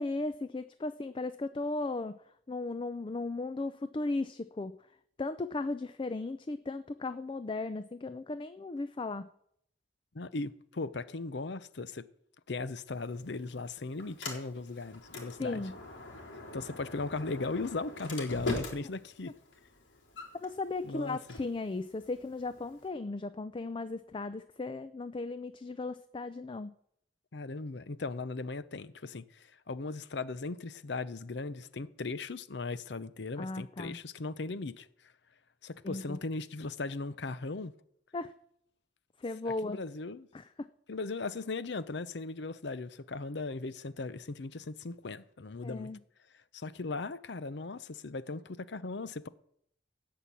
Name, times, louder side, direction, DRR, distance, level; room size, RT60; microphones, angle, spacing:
voice 1, 0.0-2.2 2.5-4.8 5.2-9.3 15.4-15.8 20.4-26.7 33.4-34.0 35.8-36.2 38.1-38.3 39.2-39.8 40.3-40.7 45.6-46.0, left 3 dB, 25° left, 0.4 m, -36 dB
voice 2, 10.1-12.1 12.5-15.6 16.5-19.4 20.8-21.2 27.3-34.9 35.6-37.7 39.6-40.3 40.9-45.9 46.5-49.3, left 3 dB, 65° left, 0.7 m, -38 dB
Sliding door, 12.9-22.9, left 2 dB, 80° left, 4.0 m, -43 dB
17.0 x 5.9 x 8.4 m
head